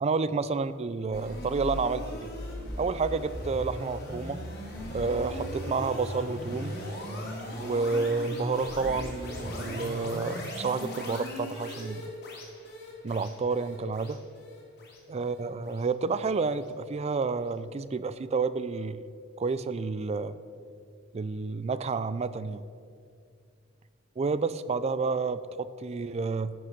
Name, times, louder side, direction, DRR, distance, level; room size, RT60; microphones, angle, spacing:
voice 1, 0.0-2.3 2.8-4.4 4.9-6.8 7.6-12.1 13.0-14.2 15.1-19.0 19.4-20.4 21.1-22.6 24.2-26.5, right 4 dB, 30° right, 15 dB, 0.4 m, -30 dB
sound 1, 1.1-16.3, equal, 55° left, 2.4 m, -38 dB
11.0 x 6.3 x 5.9 m, 2.3 s
head